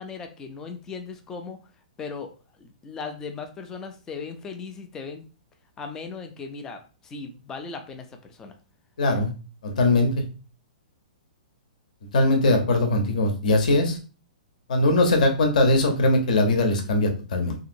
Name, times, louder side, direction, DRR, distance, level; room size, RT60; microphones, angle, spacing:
voice 1, 0.0-1.6 2.0-2.3 2.6-5.2 5.8-8.5, left 4 dB, 10° left, 6 dB, 0.4 m, -37 dB
voice 2, 9.0-9.3 9.6-10.1 12.1-14.0 14.7-17.6, left 2 dB, 70° left, 4 dB, 0.8 m, -20 dB
2.9 x 2.7 x 2.6 m, 0.35 s
hypercardioid pair, 165°, 4 cm